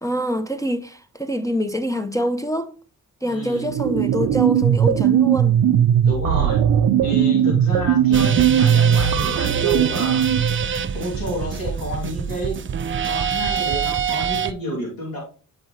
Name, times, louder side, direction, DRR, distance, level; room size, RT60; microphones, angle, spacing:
voice 1, 0.0-2.7 3.2-5.6, equal, 10° left, 0.5 m, -25 dB
voice 2, 3.3-3.7 6.0-6.6 7.0-10.2 10.9-12.6 13.0-15.2, equal, 90° left, 2.5 m, -29 dB
sound 1, 3.5-10.7, right 9 dB, 85° right, 0.5 m, -18 dB
sound 2, 8.1-14.5, right 7 dB, 35° right, 0.5 m, -25 dB
7.7 x 4.7 x 3.0 m
cardioid pair, 55°, 34 cm